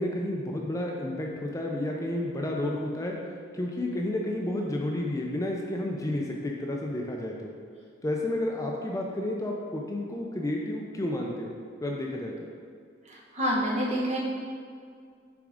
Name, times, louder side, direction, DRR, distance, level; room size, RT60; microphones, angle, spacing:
voice 1, 0.0-3.1 3.5-7.5 8.0-12.5, left 1 dB, 15° left, -1 dB, 0.5 m, -31 dB
voice 2, 13.0-14.2, equal, 35° right, -4 dB, 1.2 m, -28 dB
6.9 x 3.7 x 4.9 m, 2.1 s
head